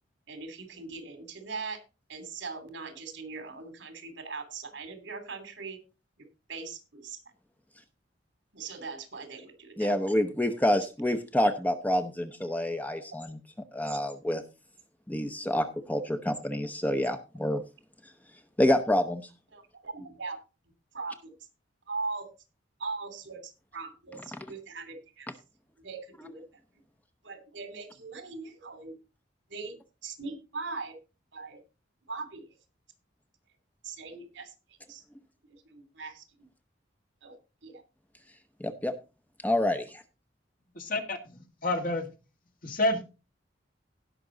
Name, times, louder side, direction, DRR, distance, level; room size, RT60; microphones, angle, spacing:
voice 1, 0.3-1.8 2.1-5.8 6.5-7.2 8.5-9.9 19.5-20.4 20.9-21.3 21.9-22.3 22.8-25.3 25.8-26.4 27.2-28.9 29.5-30.9 31.3-31.6 32.1-32.4 33.8-34.5 34.9-35.0 35.6-36.2 37.2-37.3 37.6-37.8, right 4 dB, 75° right, 2.9 m, -40 dB
voice 2, 9.8-13.4 13.7-14.4 15.1-17.6 18.6-19.3 38.6-38.9 39.4-40.0, left 1 dB, 10° left, 0.8 m, -27 dB
voice 3, 40.8-42.1 42.6-43.0, left 2 dB, 50° left, 2.2 m, -29 dB
17.5 x 6.0 x 3.9 m
head